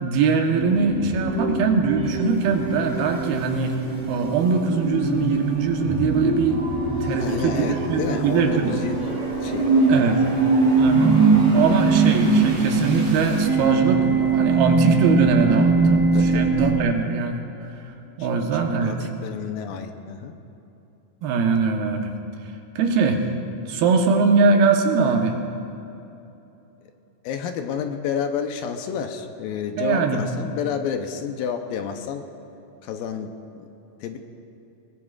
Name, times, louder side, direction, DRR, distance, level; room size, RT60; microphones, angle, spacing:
voice 1, 0.0-3.7 4.1-8.7 9.9-10.2 10.7-17.4 18.2-18.9 21.2-22.1 22.8-23.2 23.7-25.4 29.8-30.2, right 4 dB, 80° right, 3 dB, 3.0 m, -22 dB
sound 1, 0.5-16.8, right 3 dB, 40° right, 4.0 m, -22 dB
voice 2, 7.2-9.1 9.4-10.3 16.1-16.5 18.2-20.3 27.2-32.2 32.8-33.3 33.6-33.7 34.0-34.2, left 7 dB, 80° left, 5 dB, 2.4 m, -30 dB
22.0 x 21.0 x 2.5 m, 2.9 s
omnidirectional pair, 4.3 m